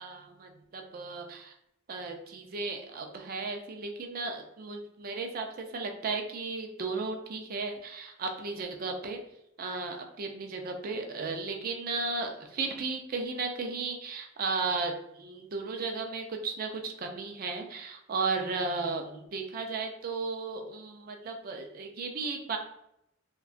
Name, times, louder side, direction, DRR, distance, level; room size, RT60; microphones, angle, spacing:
voice 1, 0.0-1.5 1.9-9.2 9.6-22.6, right 4 dB, 45° right, 4 dB, 0.4 m, -35 dB
2.7 x 2.2 x 2.5 m, 0.81 s
head